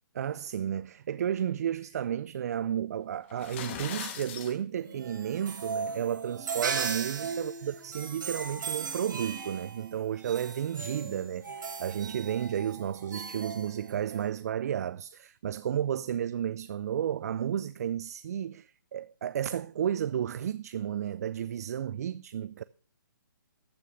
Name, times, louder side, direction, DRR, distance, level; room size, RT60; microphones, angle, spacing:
voice 1, 0.2-22.6, right 9 dB, 50° right, 0.4 m, -32 dB
sound 1, 3.3-4.6, left 8 dB, 35° left, 1.9 m, -39 dB
sound 2, 4.8-14.3, right 5 dB, 70° right, 3.5 m, -38 dB
14.0 x 6.5 x 6.2 m
hypercardioid pair, 150°, 11 cm